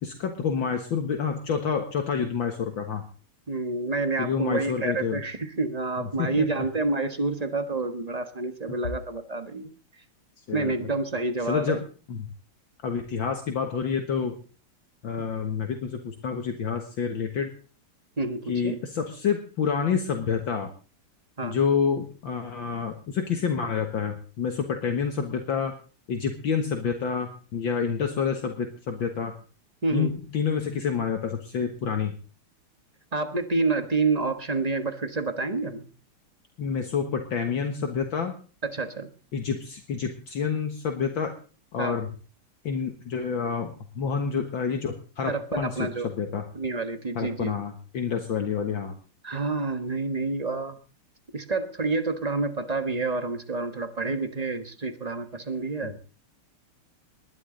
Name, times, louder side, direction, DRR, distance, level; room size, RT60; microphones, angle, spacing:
voice 1, 0.0-3.0 4.2-5.2 6.0-6.5 10.5-10.9 11.4-11.8 12.1-12.3 12.8-14.4 15.0-17.5 18.5-20.7 21.4-25.7 26.1-29.3 29.9-32.1 36.6-38.3 39.3-41.3 41.7-42.1 42.6-46.4 47.2-49.0 55.8-56.0, left 6 dB, 65° left, 5 dB, 2.1 m, -28 dB
voice 2, 3.5-9.7 10.5-11.8 18.2-18.8 21.4-21.6 29.8-30.1 33.1-35.9 38.6-39.1 41.8-42.0 45.2-46.1 46.5-47.5 49.2-50.8 51.3-55.9, right 3 dB, 20° right, 8 dB, 1.1 m, -28 dB
20.5 x 12.0 x 3.9 m, 0.37 s
omnidirectional pair, 2.4 m